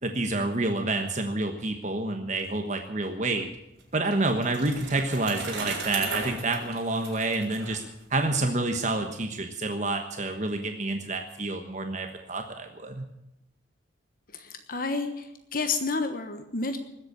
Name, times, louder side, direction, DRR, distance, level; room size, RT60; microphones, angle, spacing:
voice 1, 0.0-3.5 3.9-7.8 8.1-13.1, right 2 dB, 40° right, 5 dB, 1.2 m, -28 dB
Bicycle, 3.5-8.6, right 4 dB, 60° right, 4.7 m, -37 dB
voice 2, 14.3-16.8, left 4 dB, 50° left, 7 dB, 1.2 m, -30 dB
20.0 x 8.2 x 8.6 m, 0.87 s
head